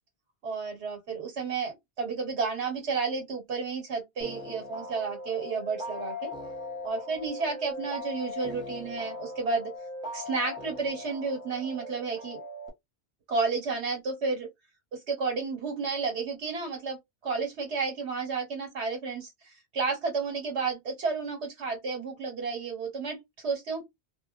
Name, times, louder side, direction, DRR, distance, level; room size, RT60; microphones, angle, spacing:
voice 1, 0.4-6.3 6.8-9.7 10.1-12.4 13.3-14.5 14.9-17.0 17.2-23.8, right 4 dB, 85° right, 1.5 m, -32 dB
sound 1, 4.2-12.7, left 2 dB, 5° right, 0.8 m, -39 dB
2.7 x 2.2 x 2.4 m
omnidirectional pair, 1.1 m